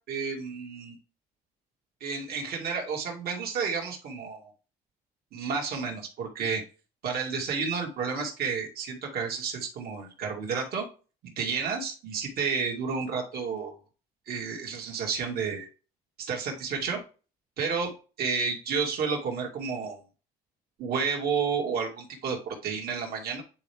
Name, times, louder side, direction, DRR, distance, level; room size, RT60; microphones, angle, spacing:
voice 1, 0.1-1.0 2.0-4.5 5.3-6.6 7.0-10.9 11.4-13.7 14.3-15.7 16.2-17.0 17.6-17.9 18.2-20.0 20.8-23.4, right 5 dB, 65° right, 1 dB, 2.3 m, -31 dB
9.6 x 4.5 x 3.5 m, 0.35 s
cardioid pair, 110°, 17 cm